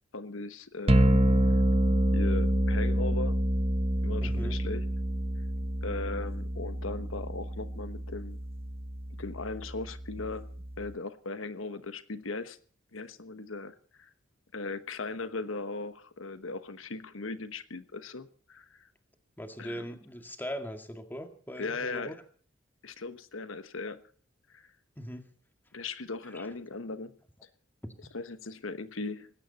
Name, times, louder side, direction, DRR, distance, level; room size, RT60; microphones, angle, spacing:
voice 1, 0.1-1.3 2.1-3.4 4.0-4.8 5.8-8.4 9.2-10.5 10.8-12.6 12.9-14.1 14.5-18.9 19.6-19.9 21.6-22.2 22.8-24.0 24.5-24.6 25.7-27.1 28.1-29.3, left 3 dB, 80° left, 12 dB, 1.2 m, -38 dB
sound 1, 0.9-10.9, right 1 dB, 30° right, 1.1 m, -28 dB
voice 2, 4.2-4.6 19.4-22.2 25.0-25.2 26.3-26.5, equal, 10° left, 6 dB, 2.1 m, -40 dB
19.5 x 16.5 x 4.2 m, 0.43 s
head